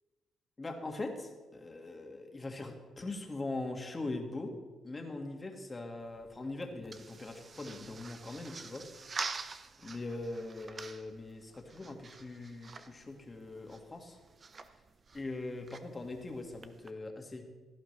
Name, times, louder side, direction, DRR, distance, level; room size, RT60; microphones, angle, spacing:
voice 1, 0.6-4.5 4.8-8.8 9.8-14.2 15.1-17.4, left 2 dB, 25° left, 3 dB, 1.9 m, -41 dB
sound 1, 6.0-16.9, right 4 dB, 40° right, 0.7 m, -47 dB
16.5 x 11.5 x 3.3 m, 1.3 s
cardioid pair, 90°, 0 cm